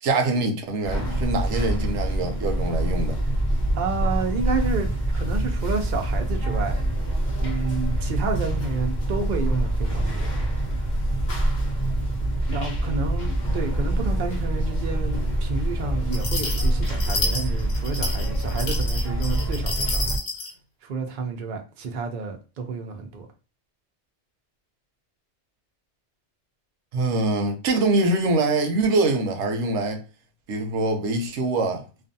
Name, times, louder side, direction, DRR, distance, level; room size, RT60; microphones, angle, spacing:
voice 1, 0.0-3.2 26.9-30.0 30.5-31.8, right 2 dB, 90° right, 0.9 m, -24 dB
sound 1, 0.8-20.2, right 1 dB, 45° left, 0.8 m, -25 dB
voice 2, 3.8-4.9 5.1-6.8 7.4-10.3 12.5-20.1 20.8-23.3, right 4 dB, 55° right, 0.6 m, -30 dB
sound 2, 16.1-20.5, left 3 dB, 70° left, 1.1 m, -30 dB
2.5 x 2.3 x 2.5 m
omnidirectional pair, 1.2 m